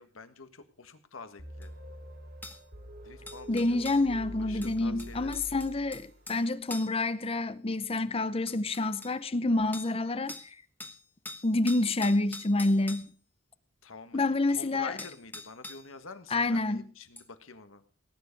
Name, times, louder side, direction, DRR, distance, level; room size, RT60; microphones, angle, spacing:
voice 1, 0.0-1.7 3.0-3.8 4.5-5.4 13.8-14.2 14.5-17.8, left 4 dB, 80° left, 1.6 m, -47 dB
sound 1, 1.4-6.4, equal, 55° right, 3.0 m, -45 dB
sound 2, 1.6-1.7 2.4-2.6 3.3-4.1 4.6-6.4 6.7-7.0 8.0-8.1 8.5-9.2 9.7-10.0 10.3-10.5 10.8-13.1 14.6-14.7 15.0-15.9 17.2-17.3, left 2 dB, 10° left, 1.2 m, -44 dB
voice 2, 3.5-10.6 11.4-13.1 14.1-14.9 16.3-16.8, left 2 dB, 30° left, 0.7 m, -28 dB
18.0 x 9.9 x 5.3 m
head